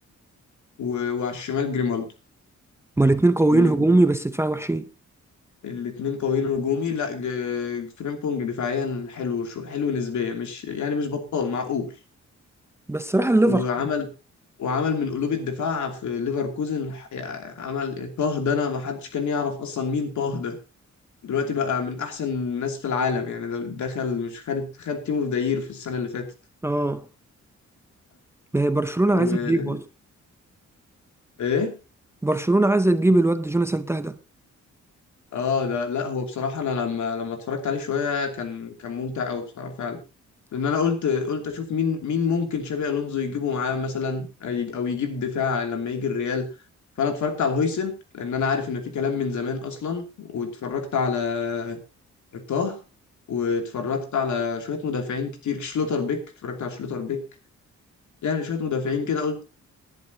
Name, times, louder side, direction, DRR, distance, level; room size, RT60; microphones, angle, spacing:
voice 1, 0.8-2.1 3.5-3.9 5.6-11.9 13.4-14.1 14.6-20.6 21.2-26.3 29.1-29.8 31.4-31.8 35.3-40.0 40.5-46.5 47.0-51.8 52.3-52.8 53.3-57.2 58.2-59.4, left 5 dB, 75° left, 2.8 m, -27 dB
voice 2, 3.0-4.9 12.9-13.7 26.6-27.0 28.5-29.8 32.2-34.2, right 2 dB, 10° right, 0.6 m, -20 dB
19.5 x 11.0 x 2.9 m
wide cardioid pair, 165°, 29 cm